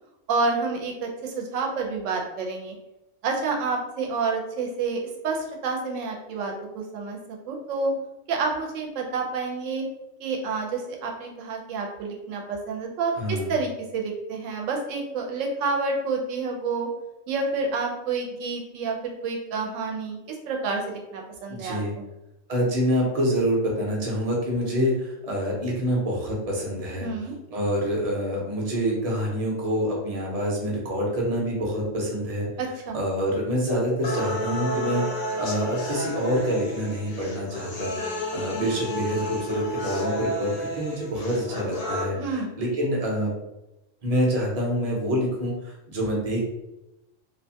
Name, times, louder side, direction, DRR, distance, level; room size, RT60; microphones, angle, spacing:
voice 1, 0.3-2.7 3.2-5.0 5.2-7.2 7.5-7.9 8.3-9.8 10.2-16.9 17.3-20.2 20.5-22.1 27.0-27.4 32.6-33.0 42.2-42.5, right 4 dB, 85° right, 1 dB, 0.9 m, -29 dB
voice 2, 13.2-13.5 21.5-21.9 22.5-27.1 27.5-32.5 32.9-37.9 38.3-43.3 44.0-46.4, equal, 40° right, -3 dB, 0.6 m, -26 dB
sound 1, 34.0-42.0, equal, 60° left, 0.7 m, -31 dB
2.6 x 2.2 x 2.7 m, 0.93 s
omnidirectional pair, 1.3 m